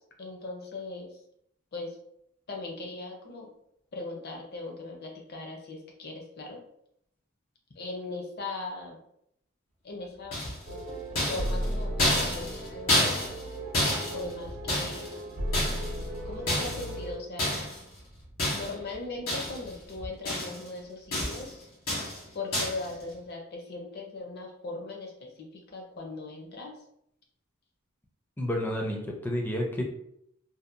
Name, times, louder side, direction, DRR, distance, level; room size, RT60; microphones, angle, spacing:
voice 1, 0.2-1.2 1.7-2.0 2.5-3.5 3.9-6.6 7.8-9.0 9.8-10.4 10.7-10.8 11.3-13.3 14.1-15.1 16.2-17.6 18.5-21.7 22.3-26.7, left 3 dB, 50° left, 1 dB, 0.6 m, -39 dB
sound 1, 10.3-10.8 11.2-13.5 13.7-15.2 15.5-16.1 16.5-16.9 17.4-17.8 18.4-18.9 19.3-19.7 20.0-20.7 21.1-21.5 21.9-22.2 22.5-22.9, left 1 dB, 75° left, 1.3 m, -29 dB
sound 2, 10.7-17.1, equal, 70° right, 0.8 m, -35 dB
voice 2, 28.4-29.8, left 1 dB, 10° left, 0 dB, 0.4 m, -30 dB
2.7 x 2.1 x 2.5 m, 0.73 s
head